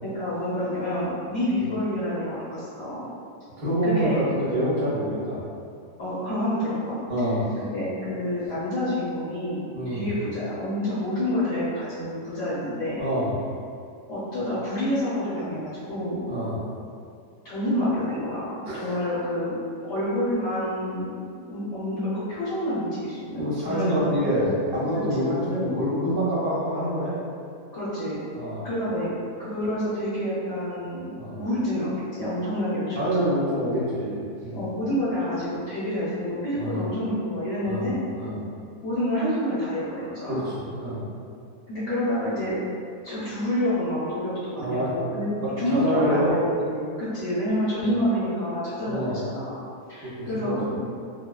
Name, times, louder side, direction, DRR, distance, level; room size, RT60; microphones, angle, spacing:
voice 1, 0.0-3.0 3.8-4.2 6.0-7.0 7.7-13.0 14.1-16.2 17.4-19.5 19.8-21.0 21.5-24.5 25.1-25.8 27.7-28.2 28.6-29.1 29.4-31.0 31.3-33.8 34.5-38.0 38.8-40.4 41.7-42.6 43.0-45.3 45.6-49.5 49.9-50.8, left 1 dB, 55° left, -13 dB, 1.1 m, -28 dB
voice 2, 3.6-5.4 7.1-7.4 9.7-10.1 13.0-13.3 16.3-16.6 18.6-19.0 23.4-27.1 28.3-28.7 31.2-31.4 33.0-34.7 36.6-36.8 37.6-38.4 40.3-41.0 44.6-44.9 45.7-46.3 48.8-49.2 50.0-50.6, equal, 45° right, -9 dB, 0.8 m, -26 dB
2.4 x 2.3 x 2.2 m, 2.4 s
omnidirectional pair, 1.6 m